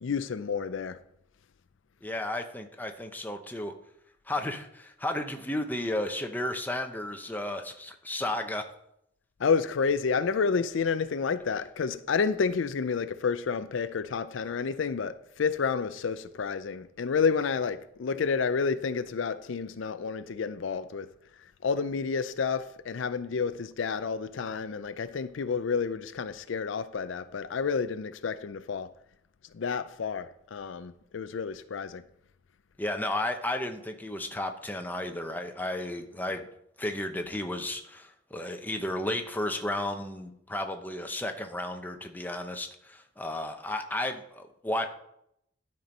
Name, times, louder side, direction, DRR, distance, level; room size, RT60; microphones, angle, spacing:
voice 1, 0.0-1.0 9.4-21.1 21.4-28.9 29.5-32.0, left 5 dB, 80° left, 0.5 m, -30 dB
voice 2, 2.0-3.7 4.3-8.6 32.8-36.4 36.8-44.9, left 1 dB, 10° left, 0.8 m, -33 dB
12.0 x 4.5 x 5.2 m
head